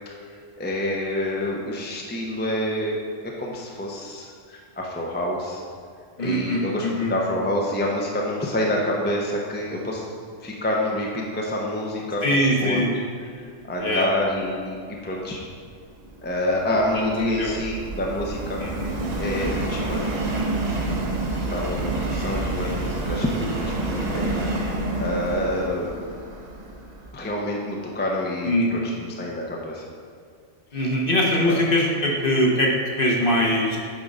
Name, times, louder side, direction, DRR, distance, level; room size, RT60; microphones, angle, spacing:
voice 1, 0.6-5.6 6.2-10.0 10.4-12.8 13.4-14.8 15.0-15.4 16.2-18.6 19.2-20.3 21.5-24.5 25.0-25.9 27.1-29.8 30.7-30.9 31.5-31.6, left 1 dB, 10° left, -2 dB, 0.7 m, -27 dB
voice 2, 6.2-7.1 12.2-12.9 13.8-14.1 16.9-17.6 18.6-18.9 28.4-28.9 30.7-33.8, equal, 45° left, -2 dB, 1.3 m, -22 dB
Subway metro underground, 15.8-27.1, right 2 dB, 40° right, 0.8 m, -28 dB
8.7 x 3.8 x 5.5 m, 2.2 s
omnidirectional pair, 1.3 m